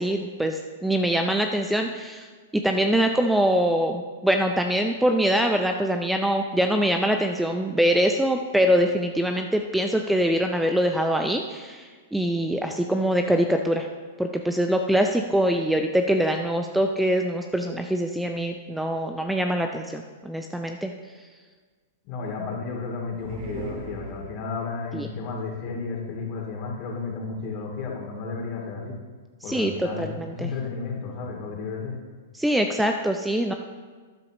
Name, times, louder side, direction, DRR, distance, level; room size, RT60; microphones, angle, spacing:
voice 1, 0.0-2.3 2.5-13.9 14.2-20.9 24.9-25.1 29.5-30.5 32.3-33.5, equal, 5° right, 4 dB, 0.5 m, -24 dB
voice 2, 22.0-29.0 29.4-32.0, left 4 dB, 40° left, 0 dB, 2.5 m, -33 dB
sound 1, 23.1-24.7, right 1 dB, 50° right, 2.5 m, -37 dB
12.0 x 10.5 x 3.0 m, 1.5 s
hypercardioid pair, 115°, 0 cm